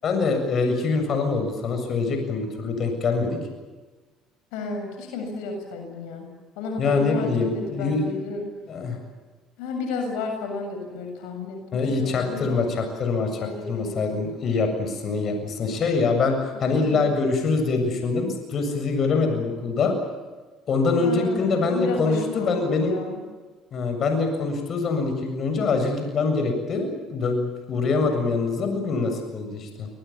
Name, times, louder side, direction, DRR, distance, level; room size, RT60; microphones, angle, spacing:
voice 1, 0.0-3.4 6.8-8.1 8.7-9.0 11.7-20.0 20.7-23.0 23.7-29.9, left 4 dB, 50° left, 5 dB, 7.4 m, -24 dB
voice 2, 4.5-6.3 6.6-8.5 9.6-12.6 13.3-14.2 16.5-17.1 21.0-23.2, left 3 dB, 85° left, 3 dB, 7.1 m, -32 dB
28.5 x 22.0 x 7.3 m, 1.3 s
supercardioid pair, 80°, 0 cm